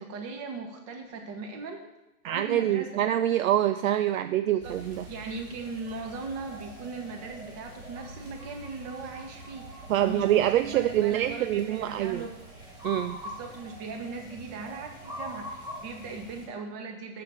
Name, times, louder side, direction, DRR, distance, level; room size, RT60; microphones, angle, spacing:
voice 1, 0.0-1.8 2.2-3.0 4.6-4.7 5.1-12.3 13.2-17.2, right 4 dB, 30° right, 3 dB, 1.7 m, -39 dB
voice 2, 2.3-5.1 9.9-12.2 12.8-13.2, right 12 dB, 65° right, 10 dB, 0.5 m, -25 dB
sound 1, 4.6-16.5, equal, 10° right, 1.7 m, -44 dB
6.9 x 6.3 x 7.2 m, 0.95 s
hypercardioid pair, 145°, 45 cm